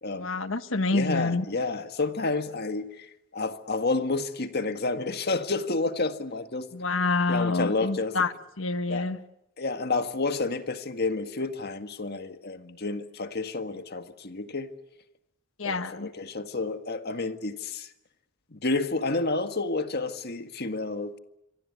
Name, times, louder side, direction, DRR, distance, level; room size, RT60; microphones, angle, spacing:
voice 1, 0.1-1.4 6.7-9.2 15.6-16.1, left 3 dB, 70° left, 1.4 m, -27 dB
voice 2, 0.9-6.7 7.3-8.2 8.9-9.1 9.6-14.7 15.6-17.9 18.5-21.2, left 3 dB, 50° left, 1.8 m, -30 dB
27.0 x 24.0 x 8.3 m
head